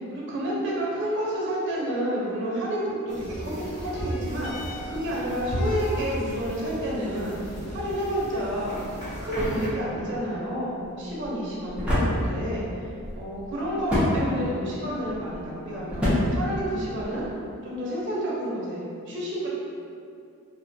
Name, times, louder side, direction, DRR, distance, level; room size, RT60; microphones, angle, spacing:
voice 1, 0.1-7.4 7.7-8.8 9.2-12.7 13.2-17.3 17.6-19.5, equal, 55° right, -6 dB, 0.5 m, -30 dB
sound 1, 3.1-9.7, equal, 35° left, 0.9 m, -35 dB
sound 2, 3.6-12.6 13.4-13.5, left 2 dB, 70° left, 0.3 m, -47 dB
sound 3, 8.5-17.3, left 1 dB, 5° right, 0.5 m, -30 dB
2.2 x 2.1 x 2.6 m, 2.4 s
head